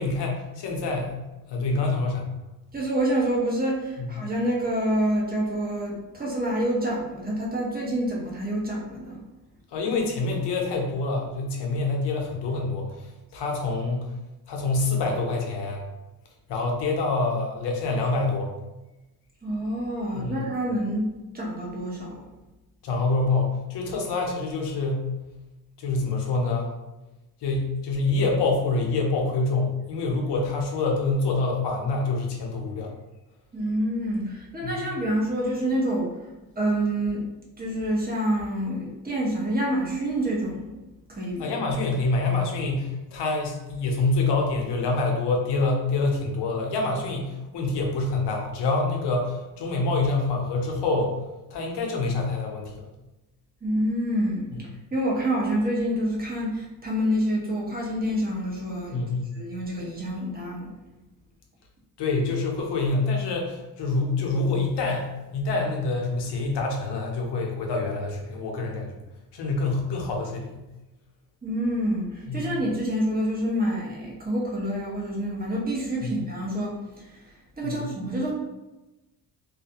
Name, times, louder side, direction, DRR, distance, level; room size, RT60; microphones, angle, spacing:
voice 1, 0.0-2.3 4.0-4.1 9.7-14.1 14.5-15.8 16.5-18.5 20.1-20.4 22.8-25.1 25.8-26.7 27.4-33.0 34.6-34.9 41.4-51.2 51.5-52.9 58.9-59.3 62.0-69.0 69.3-70.6 72.3-72.5 76.0-76.1 77.6-77.8, left 3 dB, 75° left, 1 dB, 0.7 m, -26 dB
voice 2, 2.7-9.2 19.4-22.3 33.5-36.3 36.6-37.3 37.6-40.8 41.1-41.5 53.6-59.1 59.4-60.7 71.4-78.3, right 1 dB, 20° right, -3 dB, 0.8 m, -27 dB
2.3 x 2.3 x 2.8 m, 1.0 s
cardioid pair, 80°, 41 cm